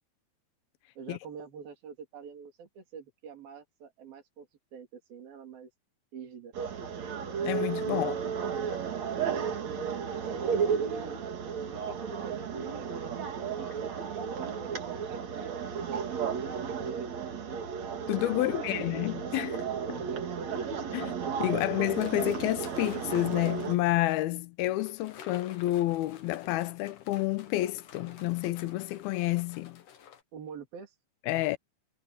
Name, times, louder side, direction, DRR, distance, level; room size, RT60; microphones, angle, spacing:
voice 1, 1.0-5.7 6.1-6.5 7.9-8.2 9.1-11.2 11.7-13.5 13.8-17.6 18.3-18.9 20.1-20.2 30.3-31.0, right 6 dB, 70° right, 5.3 m, -46 dB
sound 1, 6.5-23.8, right 7 dB, 50° right, 3.2 m, -33 dB
voice 2, 7.4-8.1 18.1-20.0 20.9-29.8 31.3-31.6, left 16 dB, 85° left, 2.7 m, -29 dB
sound 2, 21.9-23.9 24.8-30.2, left 8 dB, 60° left, 3.1 m, -51 dB
omnidirectional pair, 4.3 m